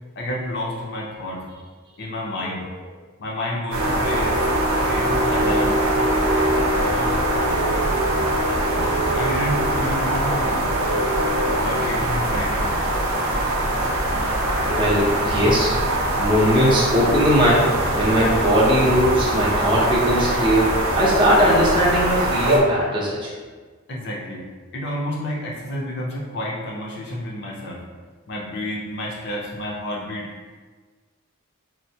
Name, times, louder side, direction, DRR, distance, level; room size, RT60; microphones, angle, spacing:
voice 1, 0.2-1.4 2.0-2.6 3.2-5.8 6.7-7.2 9.2-10.7 11.5-12.8 23.9-24.5 24.7-27.8 28.3-30.3, left 1 dB, 50° left, -3 dB, 0.5 m, -30 dB
sound 1, 3.7-22.6, right 1 dB, 65° right, 0.5 m, -22 dB
voice 2, 14.2-15.7 16.0-23.3, equal, 20° right, -6 dB, 0.6 m, -20 dB
4.2 x 2.0 x 2.7 m, 1.4 s
head